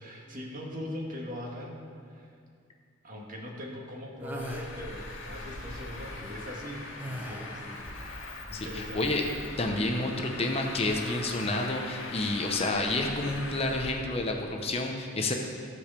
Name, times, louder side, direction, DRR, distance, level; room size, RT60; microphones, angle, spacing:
voice 1, 0.0-2.3 3.0-9.2 9.7-10.0, left 1 dB, 40° right, -1 dB, 1.6 m, -41 dB
sound 1, 4.2-4.7 7.0-7.7, equal, 10° right, 0.6 m, -39 dB
Traffic noise roadway noise, 4.4-13.9, left 2 dB, 85° left, 1.7 m, -41 dB
voice 2, 8.5-9.2 9.6-15.3, left 2 dB, 30° left, 2 dB, 0.8 m, -29 dB
15.5 x 5.1 x 6.8 m, 2.2 s
head